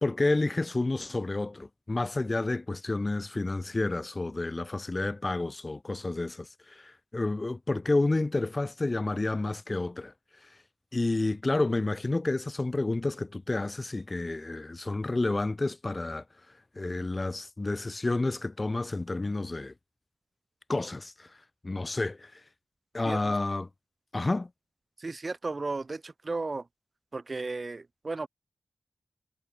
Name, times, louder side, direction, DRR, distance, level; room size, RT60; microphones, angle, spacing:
voice 1, 0.0-10.1 10.9-16.2 16.8-19.7 20.7-21.3 21.6-22.3 22.9-23.7 24.1-24.5, left 2 dB, 30° left, 0.4 m, -30 dB
voice 2, 23.0-23.4 25.0-26.7 27.1-28.3, right 3 dB, 40° right, 0.4 m, -34 dB
wide cardioid pair, 115°, 0 cm